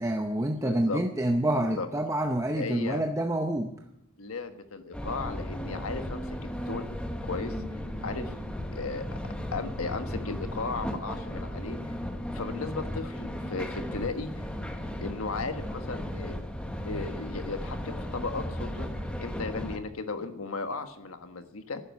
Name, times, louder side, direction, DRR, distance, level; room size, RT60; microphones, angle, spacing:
voice 1, 0.0-3.7, right 1 dB, 15° right, 4 dB, 0.7 m, -27 dB
voice 2, 0.5-1.0 1.8-1.9 2.6-3.0 4.2-6.2 6.7-7.0 7.2-8.3 8.7-9.2 9.5-11.9 12.3-14.4 15.0-16.4 16.8-18.9 19.2-21.8, left 3 dB, 90° left, 8 dB, 1.4 m, -36 dB
sound 1, 4.9-19.8, left 1 dB, 5° left, 1.0 m, -35 dB
12.0 x 9.9 x 9.4 m, 0.82 s
head